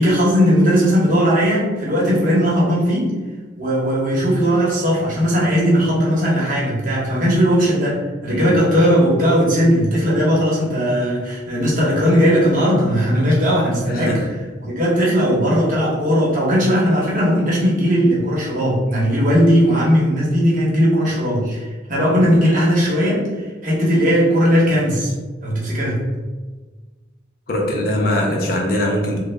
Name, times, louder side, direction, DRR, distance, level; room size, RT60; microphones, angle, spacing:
voice 1, 0.0-3.1 3.6-14.2 14.6-25.1 25.4-26.1, equal, 45° right, -5 dB, 0.9 m, -17 dB
voice 2, 13.9-14.2 27.5-29.2, left 1 dB, 50° left, 0 dB, 0.5 m, -21 dB
3.2 x 2.1 x 3.2 m, 1.3 s
head